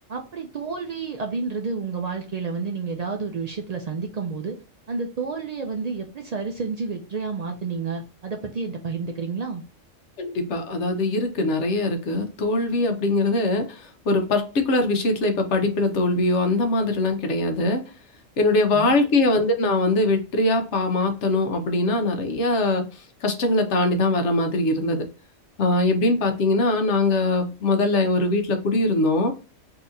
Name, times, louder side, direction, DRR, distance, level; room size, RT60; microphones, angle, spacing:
voice 1, 0.1-4.6 4.9-9.6 18.7-19.0, right 4 dB, 75° right, 3 dB, 0.3 m, -30 dB
voice 2, 10.2-13.8 14.1-17.8 18.4-22.9 23.2-25.1 25.6-29.3, left 2 dB, 65° left, 6 dB, 1.0 m, -22 dB
3.8 x 2.8 x 2.5 m, 0.33 s
omnidirectional pair, 1.3 m